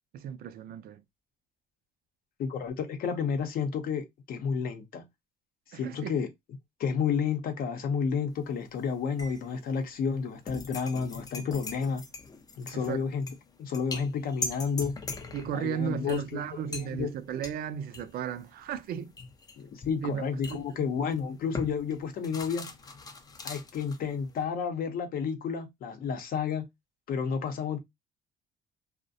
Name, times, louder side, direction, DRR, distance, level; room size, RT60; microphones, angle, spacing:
voice 1, 0.1-1.0 5.7-6.2 12.7-13.0 15.3-19.1 20.0-20.2 20.5-20.9, right 8 dB, 60° right, 0.4 m, -35 dB
voice 2, 2.4-5.0 5.7-6.3 6.8-12.0 12.6-13.3 13.6-14.9 15.5-16.4 16.7-17.1 19.6-22.7 23.4-26.7 27.1-27.8, left 6 dB, 60° left, 0.6 m, -31 dB
sound 1, 8.3-8.8 9.2-24.4, left 4 dB, 20° left, 0.4 m, -41 dB
2.3 x 2.1 x 2.6 m
cardioid pair, 110°, 17 cm